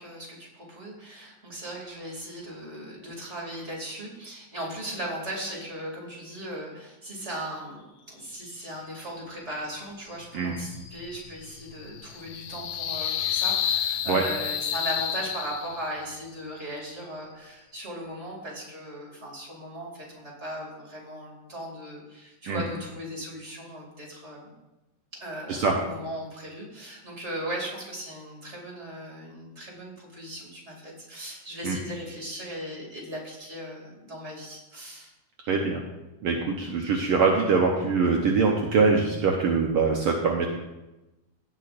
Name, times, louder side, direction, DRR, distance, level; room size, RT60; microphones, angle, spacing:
voice 1, 0.0-24.5 25.1-35.1, right 1 dB, 20° right, -2 dB, 2.7 m, -38 dB
sound 1, 10.1-16.0, left 9 dB, 80° left, 1.4 m, -31 dB
voice 2, 35.5-35.8 36.2-40.5, right 4 dB, 70° right, 0 dB, 1.3 m, -23 dB
17.5 x 8.3 x 2.6 m, 1.0 s
omnidirectional pair, 3.6 m